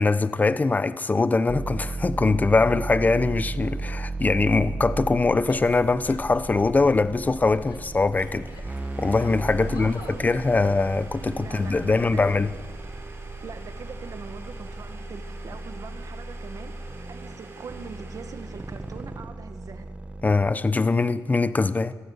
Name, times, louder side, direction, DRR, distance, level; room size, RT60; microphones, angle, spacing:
voice 1, 0.0-12.5 20.2-21.9, left 3 dB, 25° left, 0.8 m, -22 dB
sound 1, 1.5-20.5, right 2 dB, 15° right, 1.2 m, -35 dB
Female speech woman speaking / Yell, 5.5-6.8 7.3-8.8 9.2-10.2, left 6 dB, 70° left, 1.7 m, -47 dB
Domestic sounds home sounds, 8.2-19.2, right 4 dB, 40° right, 3.9 m, -47 dB
voice 2, 9.6-10.4 11.2-12.3 13.4-19.9, right 5 dB, 55° right, 1.8 m, -42 dB
24.0 x 15.5 x 8.1 m
wide cardioid pair, 145°, 7 cm